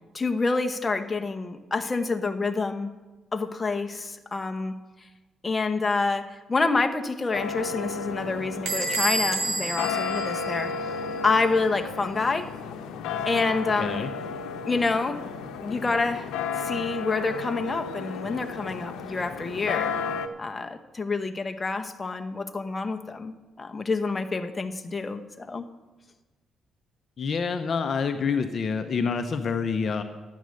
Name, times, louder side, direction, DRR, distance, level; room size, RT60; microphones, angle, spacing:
voice 1, 0.1-2.9 3.3-4.7 5.4-10.7 11.2-12.5 13.3-14.0 14.7-15.2 15.6-16.3 16.6-19.9 20.4-25.7, left 3 dB, 25° left, 6 dB, 1.0 m, -27 dB
sound 1, 7.3-20.3, left 5 dB, 90° left, 0.8 m, -33 dB
Bell / Door, 8.7-11.2, right 2 dB, 80° right, 1.9 m, -30 dB
voice 2, 13.7-14.1 27.2-30.0, left 5 dB, 50° left, 8 dB, 0.7 m, -27 dB
12.0 x 9.4 x 6.4 m, 1.2 s
cardioid pair, 90°, 0 cm